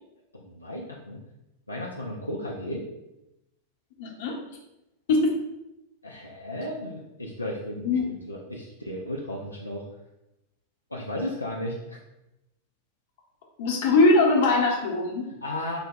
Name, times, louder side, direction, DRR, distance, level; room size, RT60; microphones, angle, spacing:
voice 1, 0.3-1.2 1.7-2.8 6.0-9.9 10.9-12.0 15.4-15.8, left 1 dB, 85° left, -2 dB, 0.4 m, -34 dB
voice 2, 4.0-4.3 5.1-5.3 7.8-8.1 13.6-15.2, left 2 dB, 55° left, -1 dB, 0.9 m, -21 dB
4.1 x 2.2 x 3.7 m, 0.92 s
figure-of-eight pair, 90°, 0 cm